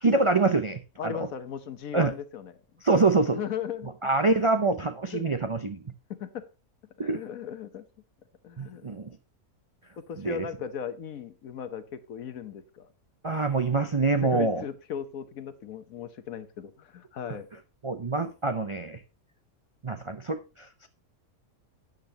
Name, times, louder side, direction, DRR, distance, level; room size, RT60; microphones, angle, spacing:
voice 1, 0.0-1.2 1.9-2.1 2.8-3.4 4.0-5.9 7.0-7.2 8.6-9.1 10.2-10.4 13.2-14.6 17.8-19.0 19.8-20.9, right 3 dB, 45° right, 0.4 m, -25 dB
voice 2, 1.0-2.5 3.2-4.5 5.1-5.2 6.2-6.5 7.0-7.9 8.4-8.9 10.0-12.9 14.0-17.5, left 8 dB, 70° left, 1.3 m, -37 dB
12.0 x 9.2 x 2.8 m
omnidirectional pair, 1.6 m